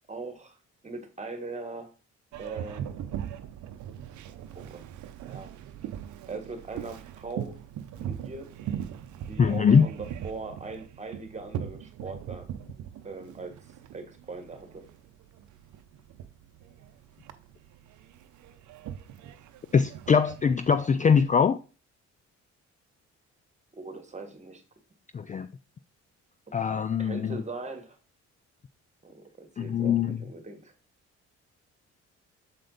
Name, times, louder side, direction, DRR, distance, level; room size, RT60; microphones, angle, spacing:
voice 1, 0.1-0.6 0.8-1.9 2.4-3.0 4.5-4.8 5.2-5.5 6.3-7.6 8.0-8.5 9.3-12.5 13.0-13.7 13.9-14.9 23.8-24.6 27.0-28.0 29.0-30.7, right 3 dB, 25° right, 1.5 m, -40 dB
Boat Water vehicle, 2.3-21.3, right 10 dB, 70° right, 0.7 m, -40 dB
voice 2, 9.4-9.9 19.7-21.6 25.1-25.5 26.5-27.4 29.6-30.2, left 6 dB, 25° left, 0.3 m, -22 dB
6.7 x 4.3 x 3.9 m
cardioid pair, 90°, 30 cm